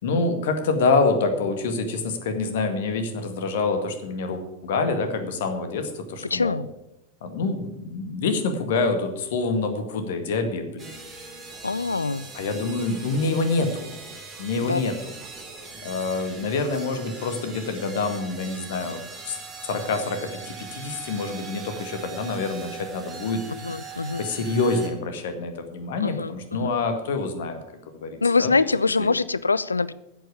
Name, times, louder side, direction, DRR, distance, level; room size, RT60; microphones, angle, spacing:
voice 1, 0.0-6.6 7.2-10.9 12.3-13.9 14.4-15.0 15.8-19.0 19.3-19.4 19.6-23.4 24.2-27.6 27.9-28.5 29.0-29.1, left 3 dB, 55° left, 7 dB, 1.9 m, -26 dB
voice 2, 6.3-6.7 11.6-12.3 14.6-14.9 23.6-24.3 26.0-26.7 28.2-29.9, left 4 dB, 80° left, 19 dB, 0.5 m, -24 dB
sound 1, 10.8-24.9, right 4 dB, 20° right, 3.5 m, -41 dB
10.0 x 8.2 x 8.5 m, 0.88 s
figure-of-eight pair, 90°, 0 cm